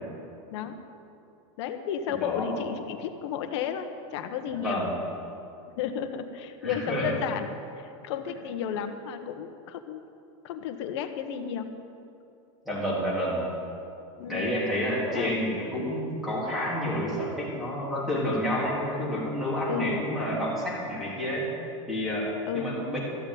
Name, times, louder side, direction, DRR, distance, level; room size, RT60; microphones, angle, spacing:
voice 1, 1.6-4.9 5.7-7.5 7.8-10.0 10.4-11.7 14.2-14.5 15.1-15.4 19.7-20.0 22.5-22.7, left 8 dB, 55° left, 8 dB, 1.1 m, -33 dB
voice 2, 2.1-2.5 4.6-4.9 6.6-7.1 12.7-13.5 14.3-21.5 21.9-22.3 22.5-23.0, equal, ahead, -7 dB, 3.7 m, -29 dB
13.5 x 8.1 x 9.2 m, 2.7 s
supercardioid pair, 165°, 17 cm